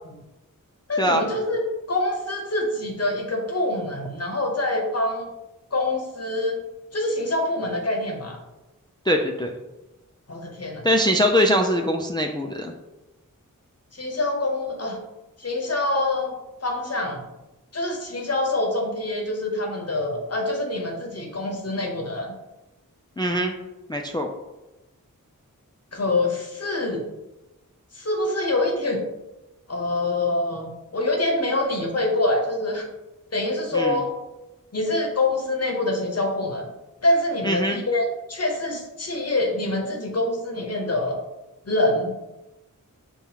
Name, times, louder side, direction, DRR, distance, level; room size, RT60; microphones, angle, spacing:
voice 1, 0.9-1.6 1.9-5.3 5.7-6.6 6.9-8.4 10.3-10.9 13.9-15.0 15.4-16.3 16.6-17.3 17.7-22.3 25.9-27.1 27.9-29.0 29.7-32.9 33.3-34.1 34.7-36.7 37.0-41.2 41.6-42.2, left 2 dB, 50° left, 2 dB, 0.8 m, -25 dB
voice 2, 9.1-9.5 10.8-12.7 23.2-23.5 23.9-24.3 33.7-34.0 37.4-37.8, equal, 15° left, 2 dB, 0.3 m, -22 dB
5.6 x 2.3 x 2.8 m, 1.0 s
wide cardioid pair, 50°, 33 cm